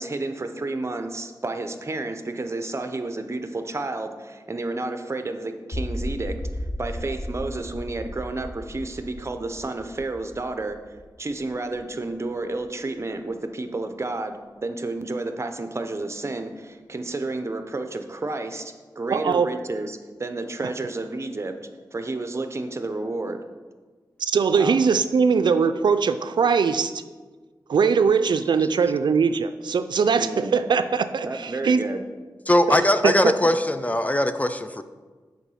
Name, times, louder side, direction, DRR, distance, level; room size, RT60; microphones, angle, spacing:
voice 1, 0.0-6.3 6.8-21.5 21.9-23.4 24.6-24.8 30.1-30.6 31.2-32.0, right 2 dB, 35° right, 7 dB, 0.7 m, -31 dB
sound 1, 5.7-11.8, equal, 55° left, 1.9 m, -35 dB
voice 2, 19.1-19.5 24.2-26.9 27.7-31.8 32.7-33.3, right 5 dB, 75° right, 10 dB, 0.3 m, -21 dB
voice 3, 32.5-34.8, left 1 dB, 20° left, 10 dB, 0.4 m, -20 dB
7.1 x 4.9 x 5.5 m, 1.4 s
wide cardioid pair, 65°, 8 cm